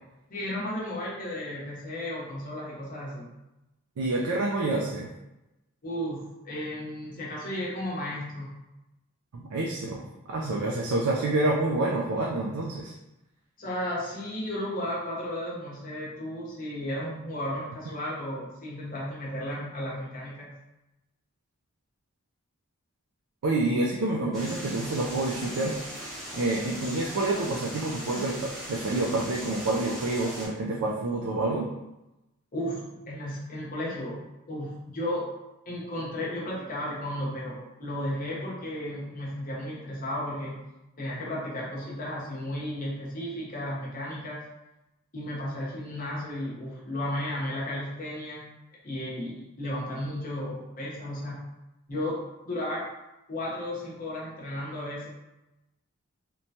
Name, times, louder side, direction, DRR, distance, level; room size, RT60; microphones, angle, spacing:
voice 1, 0.3-3.3 5.8-8.6 13.6-20.5 32.5-35.3 35.7-40.6 41.0-44.4 45.1-48.5 48.8-51.4 51.9-52.2 52.5-52.9 53.3-55.1, left 1 dB, 40° left, -6 dB, 0.8 m, -34 dB
voice 2, 4.0-5.1 9.3-12.9 23.4-31.7, right 2 dB, 85° right, -2 dB, 0.4 m, -28 dB
sound 1, 24.3-30.5, equal, ahead, 0.8 m, -39 dB
3.0 x 2.2 x 2.7 m, 0.96 s
head